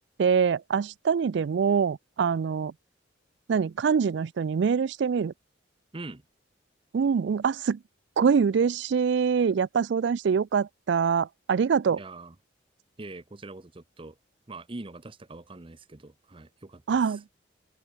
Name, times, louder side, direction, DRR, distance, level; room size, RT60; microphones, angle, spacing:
voice 1, 0.2-2.7 3.5-5.3 6.9-7.8 8.2-12.0 16.9-17.2, right 6 dB, 65° right, 0.3 m, -24 dB
voice 2, 12.0-12.3 13.0-14.2 14.5-17.2, right 2 dB, 30° right, 0.8 m, -43 dB
open air
head